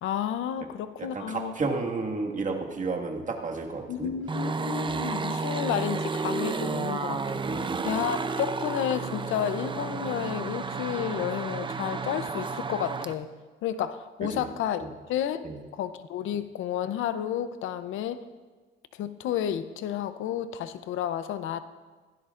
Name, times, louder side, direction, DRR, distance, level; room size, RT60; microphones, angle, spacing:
voice 1, 0.0-1.5 3.9-7.4 7.8-13.3 13.6-15.4 15.7-18.2 19.0-21.6, left 10 dB, 80° left, 12 dB, 0.6 m, -31 dB
voice 2, 1.0-4.1 4.9-5.1 7.4-7.9 14.2-14.5 14.8-14.9 15.4-15.6, right 3 dB, 40° right, 1 dB, 1.8 m, -32 dB
sound 1, 4.3-13.1, right 4 dB, 25° right, 0.6 m, -32 dB
16.0 x 15.5 x 2.5 m, 1.4 s
cardioid pair, 90°, 20 cm